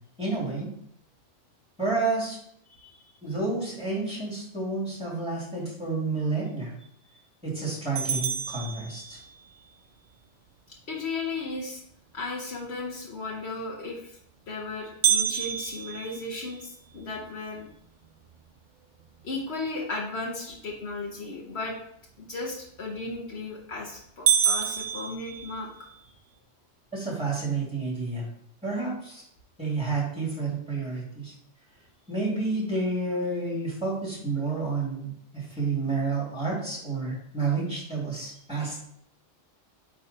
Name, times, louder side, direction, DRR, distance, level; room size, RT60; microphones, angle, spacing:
voice 1, 0.2-0.7 1.8-2.4 3.2-6.7 7.4-9.2 26.9-28.2 28.6-29.2 29.6-31.3 32.1-38.9, right 3 dB, 5° right, -5 dB, 2.6 m, -30 dB
voice 2, 2.7-3.0 7.1-7.2 10.7-11.8 12.1-14.2 14.5-17.7 19.2-21.8 22.3-25.7, left 3 dB, 65° left, -2 dB, 1.3 m, -35 dB
sound 1, 8.0-9.5 15.0-17.2 17.7-17.8 18.3-18.4 19.1-19.4 23.0-23.4 23.8-23.9 24.3-26.0, right 8 dB, 50° right, 0.6 m, -28 dB
8.8 x 3.1 x 4.3 m, 0.70 s
omnidirectional pair, 1.2 m